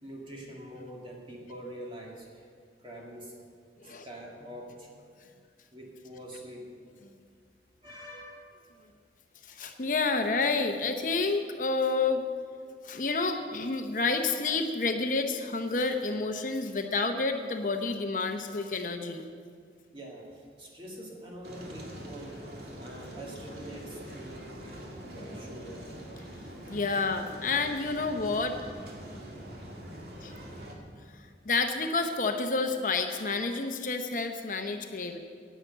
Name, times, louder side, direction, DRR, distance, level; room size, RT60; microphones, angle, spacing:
voice 1, 0.0-2.5 2.8-3.3 3.8-4.9 5.7-6.6 7.8-8.6 19.9-22.5 22.8-24.6 25.1-25.9, right 1 dB, 30° right, -2 dB, 2.2 m, -45 dB
voice 2, 9.4-12.2 12.8-19.3 26.7-28.6 30.2-30.3 31.5-35.2, left 3 dB, 50° left, 6 dB, 0.8 m, -29 dB
sound 1, 21.4-30.8, equal, 65° right, 2.1 m, -44 dB
10.5 x 9.1 x 7.9 m, 2.1 s
head